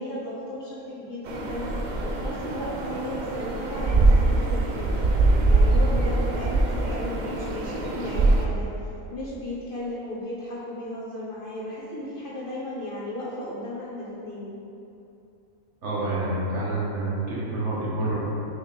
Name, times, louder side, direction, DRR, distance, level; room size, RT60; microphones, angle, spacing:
voice 1, 0.0-1.7 2.0-5.1 5.4-8.7 9.1-14.5, left 1 dB, 45° left, -7 dB, 1.1 m, -35 dB
sound 1, 1.3-8.5, right 2 dB, 80° right, 0.4 m, -23 dB
voice 2, 15.8-18.2, right 2 dB, 55° right, -7 dB, 1.5 m, -28 dB
6.0 x 5.2 x 3.3 m, 2.8 s
omnidirectional pair, 1.5 m